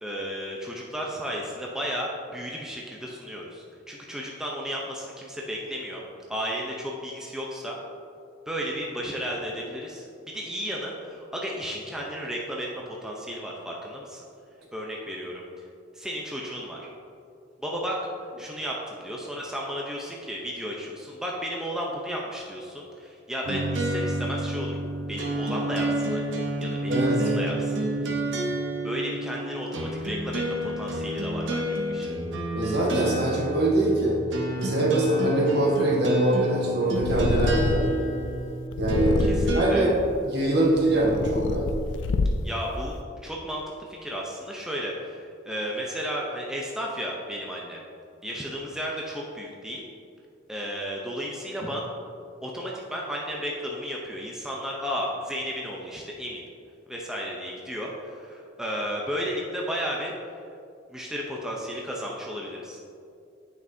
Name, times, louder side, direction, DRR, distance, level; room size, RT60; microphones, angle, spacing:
voice 1, 0.0-6.0 6.3-7.8 8.5-10.0 10.3-14.2 14.7-15.4 15.9-16.9 17.6-18.0 18.4-24.8 25.1-26.2 26.6-28.1 28.8-32.1 39.2-39.8 42.4-47.8 48.2-49.8 50.5-51.9 52.4-56.4 56.9-60.1 60.9-62.8, equal, 5° right, -3 dB, 0.5 m, -33 dB
sound 1, 23.4-39.8, right 1 dB, 85° right, 0.8 m, -29 dB
voice 2, 26.9-27.3 32.5-34.2 34.6-37.9 38.8-39.2 39.5-39.9 40.2-41.7, right 1 dB, 60° right, -2 dB, 1.2 m, -23 dB
Purr, 37.0-38.1 38.7-39.8 40.5-42.6, left 2 dB, 80° left, 0.4 m, -27 dB
9.2 x 5.5 x 2.6 m, 2.5 s
head